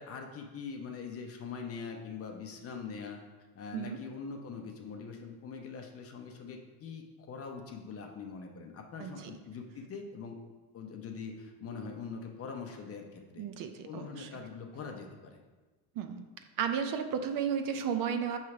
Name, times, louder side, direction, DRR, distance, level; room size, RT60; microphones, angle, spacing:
voice 1, 0.0-3.2 3.6-10.4 10.7-13.4 13.8-15.4, left 5 dB, 30° left, 3 dB, 0.7 m, -43 dB
voice 2, 9.0-9.3 13.4-14.3 16.0-16.2 16.6-18.4, right 7 dB, 50° right, 7 dB, 0.5 m, -33 dB
6.3 x 3.2 x 5.8 m, 1.2 s
cardioid pair, 155°, 44 cm